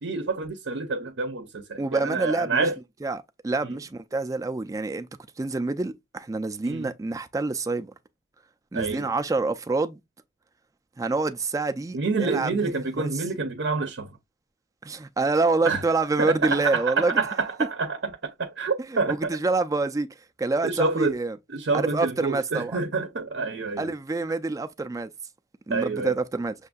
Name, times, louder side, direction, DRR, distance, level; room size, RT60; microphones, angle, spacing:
voice 1, 0.0-2.8 3.6-3.8 6.6-6.9 8.7-9.1 11.9-14.1 15.6-15.8 16.2-19.2 20.6-21.1 21.5-23.9 25.7-26.2, right 4 dB, 85° right, 0.7 m, -27 dB
voice 2, 1.8-2.7 3.0-5.1 5.4-7.9 8.7-10.0 11.0-13.1 14.8-17.2 18.9-20.1 20.4-21.4 21.7-22.8 23.8-25.1 25.7-26.5, right 3 dB, 20° right, 0.3 m, -27 dB
6.4 x 2.6 x 2.3 m
head